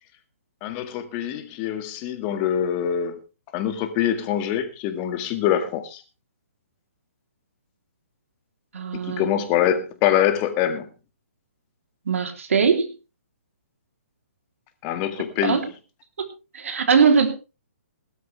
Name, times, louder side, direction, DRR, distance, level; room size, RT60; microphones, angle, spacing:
voice 1, 0.6-3.2 3.5-6.0 8.9-10.9 14.8-15.6, left 10 dB, 30° left, 2.0 m, -24 dB
voice 2, 8.7-9.3 12.1-12.9 15.4-15.7 16.2-16.3 16.5-17.3, right 6 dB, 70° right, 3.3 m, -20 dB
17.5 x 12.5 x 3.4 m
hypercardioid pair, 145°, 8 cm